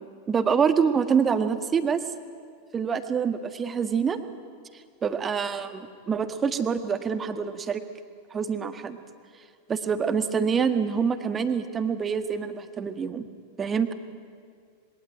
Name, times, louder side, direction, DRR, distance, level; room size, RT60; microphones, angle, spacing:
voice 1, 0.3-2.0 2.7-4.2 5.0-7.8 8.3-9.0 9.7-13.3 13.6-13.9, right 6 dB, 20° right, 9 dB, 1.6 m, -26 dB
26.5 x 22.0 x 9.0 m, 2.1 s
figure-of-eight pair, 90°, 0 cm